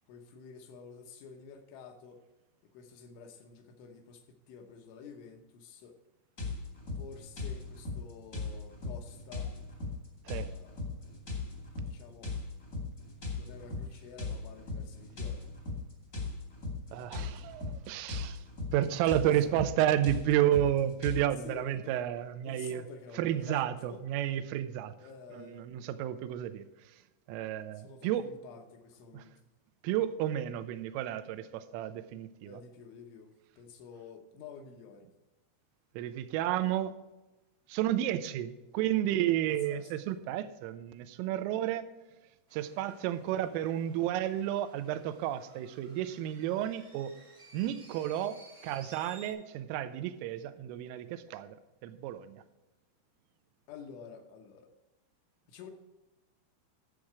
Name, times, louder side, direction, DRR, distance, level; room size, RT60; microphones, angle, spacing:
voice 1, 0.1-2.2 2.7-6.0 7.0-9.5 10.2-11.0 11.8-12.3 13.3-15.4 19.2-19.3 21.4-22.0 22.4-23.6 23.9-24.0 25.0-26.0 27.7-29.3 32.4-35.1 39.5-39.9 53.7-54.7 55.5-55.7, left 6 dB, 75° left, 4 dB, 3.1 m, -50 dB
sound 1, 6.4-21.2, left 3 dB, 40° left, 1.2 m, -39 dB
voice 2, 16.9-18.4 18.7-22.8 23.2-24.9 25.3-26.7 27.3-28.3 29.1-29.2 29.8-32.6 36.0-37.0 37.7-41.9 42.5-47.2 47.5-51.6 51.8-52.4, right 12 dB, 85° right, 12 dB, 3.2 m, -31 dB
sound 2, 42.5-49.3, right 2 dB, 30° right, 0.6 m, -57 dB
12.0 x 7.6 x 4.8 m, 1.1 s
omnidirectional pair, 5.9 m